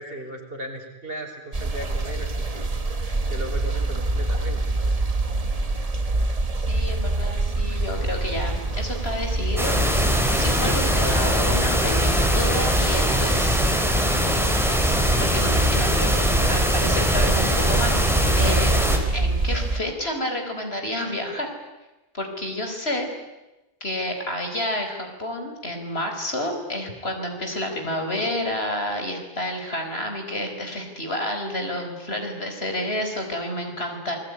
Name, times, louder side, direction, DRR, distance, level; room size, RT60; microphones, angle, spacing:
voice 1, 0.0-2.7 3.3-4.9, right 1 dB, 50° right, 3 dB, 5.2 m, -37 dB
sound 1, 1.5-19.8, right 2 dB, 30° right, 1.5 m, -25 dB
voice 2, 6.7-9.9 10.3-13.6 14.8-18.1 18.4-18.7 19.1-21.5 22.1-23.1 23.8-34.2, left 1 dB, 60° left, 4 dB, 5.3 m, -29 dB
sound 2, 9.6-19.0, equal, ahead, 3.8 m, -22 dB
29.0 x 20.0 x 9.9 m, 1.0 s
omnidirectional pair, 1.2 m